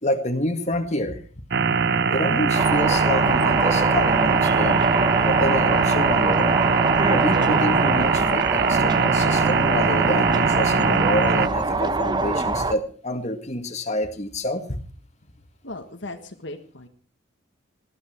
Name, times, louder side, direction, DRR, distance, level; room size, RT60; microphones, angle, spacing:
voice 1, 0.0-1.2 2.1-4.8 5.2-6.5 7.1-14.8, left 1 dB, 35° left, 6 dB, 2.0 m, -27 dB
sound 1, 1.5-11.5, right 5 dB, 55° right, 0.6 m, -21 dB
sound 2, 2.5-12.7, right 3 dB, 20° right, 0.8 m, -24 dB
voice 2, 15.6-16.9, left 2 dB, 60° left, 5 dB, 1.5 m, -37 dB
19.5 x 13.5 x 4.6 m, 0.40 s
head